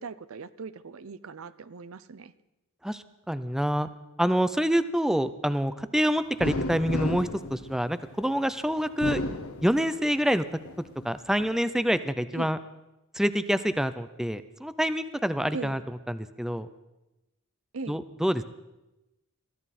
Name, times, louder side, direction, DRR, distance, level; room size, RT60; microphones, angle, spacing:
voice 1, 0.0-2.3 12.3-12.5 15.5-15.9 17.7-18.0, right 4 dB, 70° right, 15 dB, 0.6 m, -39 dB
voice 2, 2.8-3.9 4.2-9.2 9.6-10.4 11.0-12.6 13.1-15.8 16.1-16.7 17.9-18.4, equal, ahead, 13 dB, 0.5 m, -26 dB
sound 1, 6.4-8.3 8.9-10.2 10.6-11.5, left 2 dB, 75° left, 1.2 m, -33 dB
22.5 x 14.0 x 4.2 m, 0.97 s
head